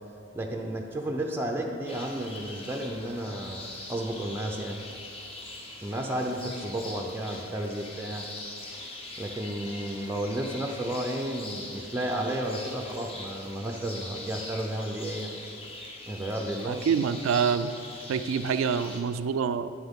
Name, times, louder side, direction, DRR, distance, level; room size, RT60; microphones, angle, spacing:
voice 1, 0.3-4.8 5.8-8.3 9.2-15.3 16.1-16.9, right 1 dB, 10° right, 1 dB, 0.5 m, -32 dB
sound 1, 1.9-19.0, left 2 dB, 30° left, 0.8 m, -42 dB
voice 2, 16.7-17.7 18.1-19.7, right 6 dB, 80° right, 12 dB, 0.3 m, -26 dB
8.8 x 7.7 x 3.6 m, 2.5 s
head